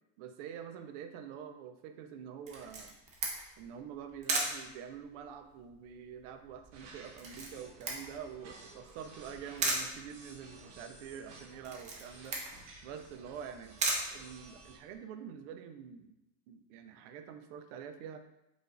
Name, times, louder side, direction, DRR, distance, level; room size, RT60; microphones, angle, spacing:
voice 1, 0.2-3.0 3.6-13.8 14.1-16.2 16.5-18.2, right 7 dB, 90° right, 8 dB, 0.5 m, -46 dB
Camera, 2.5-14.9, right 3 dB, 20° right, 0.3 m, -38 dB
sound 1, 6.7-14.8, right 3 dB, 55° right, 0.8 m, -54 dB
4.9 x 2.5 x 2.5 m, 0.89 s
cardioid pair, 170°, 35 cm